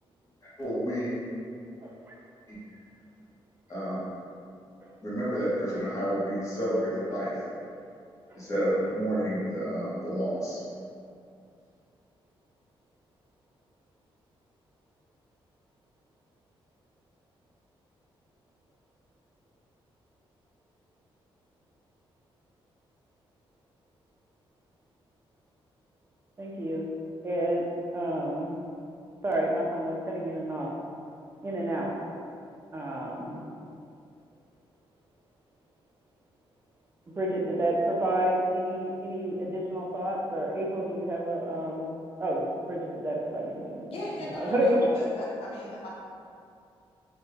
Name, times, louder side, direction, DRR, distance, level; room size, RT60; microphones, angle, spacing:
voice 1, 0.6-1.1 2.5-2.6 3.7-4.1 5.0-7.3 8.3-10.6, equal, 35° left, -9 dB, 1.1 m, -30 dB
voice 2, 1.8-2.1 5.7-5.8 26.4-26.9 27.2-28.5 29.2-30.7 31.4-32.0 32.7-33.4 37.1-41.9 42.2-45.2 45.5-45.6, right 1 dB, 25° right, -2 dB, 0.5 m, -29 dB
voice 3, 43.9-45.9, left 1 dB, 80° left, -5 dB, 0.6 m, -39 dB
3.1 x 2.2 x 3.2 m, 2.4 s
cardioid pair, 115°, 10 cm